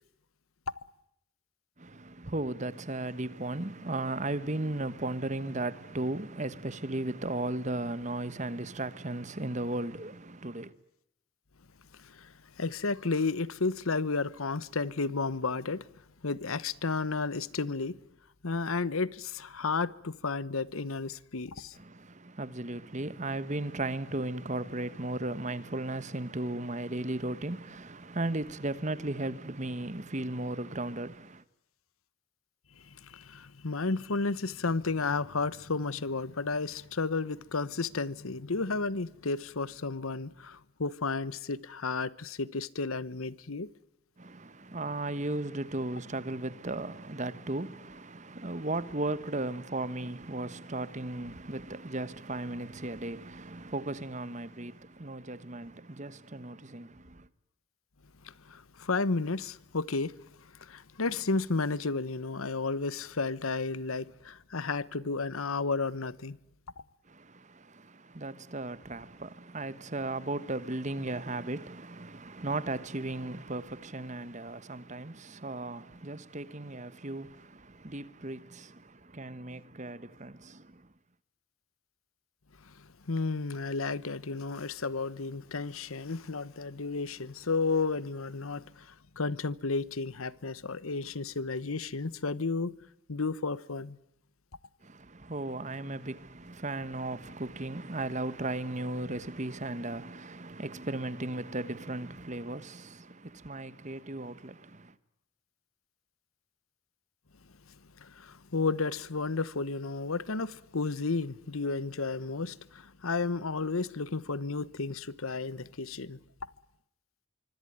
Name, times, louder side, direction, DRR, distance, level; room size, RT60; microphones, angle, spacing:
voice 1, 1.8-10.7 21.7-31.4 44.2-57.3 67.0-80.9 94.8-104.9, right 2 dB, 35° right, 1.3 m, -36 dB
voice 2, 12.0-15.9 16.2-18.0 18.4-21.8 32.8-43.7 58.2-60.1 60.6-66.4 82.6-82.7 83.1-92.7 93.1-94.0 108.0-116.2, left 3 dB, 90° left, 1.1 m, -32 dB
25.5 x 24.5 x 9.3 m
head